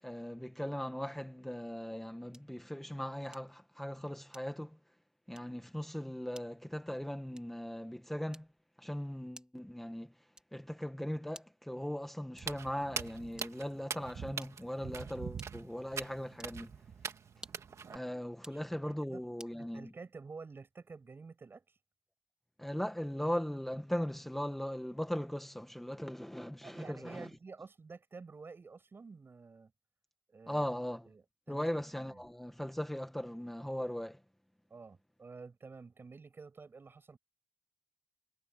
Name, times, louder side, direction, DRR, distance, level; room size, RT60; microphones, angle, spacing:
voice 1, 0.0-4.8 5.3-8.5 8.8-10.1 10.5-16.7 17.9-19.9 22.6-27.3 30.5-31.1 31.5-34.2, equal, 5° left, 1.2 m, -39 dB
sound 1, 2.3-2.6 3.3-3.6 4.3-4.8 5.3-5.6 6.3-6.6 7.3-7.7 8.3-8.7 9.3-9.7 10.3-10.7 11.3-11.7 12.3-12.7 13.3-13.7 14.3-14.7 15.4-15.8 16.3-16.6 17.3-17.8 18.3-18.7 19.4-19.6, right 1 dB, 15° right, 2.2 m, -56 dB
Walk footsteps, 12.4-18.0, right 6 dB, 75° right, 2.0 m, -43 dB
voice 2, 18.5-19.2 19.6-21.8 26.6-29.7 30.3-30.7 31.1-32.2 34.7-37.2, right 4 dB, 45° right, 7.7 m, -50 dB
wide cardioid pair, 105°, 5 cm